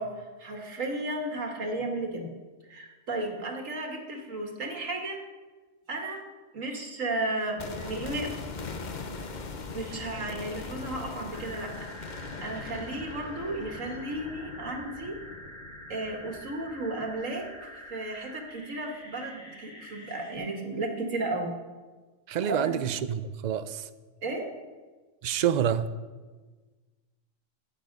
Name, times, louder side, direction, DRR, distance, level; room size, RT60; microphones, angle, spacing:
voice 1, 0.0-2.3 2.7-5.2 5.9-6.2 6.5-8.3 9.7-15.1 15.9-21.5 22.4-22.8 24.2-24.5, right 2 dB, 85° right, 2 dB, 2.2 m, -34 dB
sound 1, 7.6-17.6 17.9-18.0, left 4 dB, 40° left, 0.9 m, -41 dB
sound 2, 11.3-20.3, equal, 60° left, 3.0 m, -46 dB
voice 2, 22.3-23.9 25.2-25.9, right 9 dB, 55° right, 13 dB, 0.5 m, -27 dB
13.5 x 9.1 x 5.3 m, 1.3 s
omnidirectional pair, 1.3 m